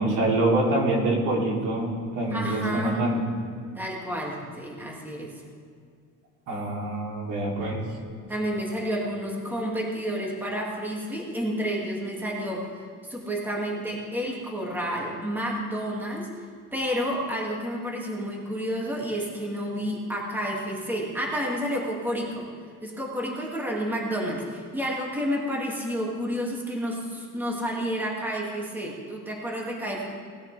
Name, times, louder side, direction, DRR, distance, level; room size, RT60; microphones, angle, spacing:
voice 1, 0.0-3.2 6.5-7.8, right 1 dB, 70° right, -2 dB, 3.0 m, -25 dB
voice 2, 2.3-3.0 3.7-5.4 8.3-12.7 13.0-16.3 16.7-22.5 22.8-30.1, equal, 5° right, -3 dB, 2.2 m, -30 dB
19.0 x 10.5 x 3.4 m, 2.2 s
cardioid pair, 120°, 31 cm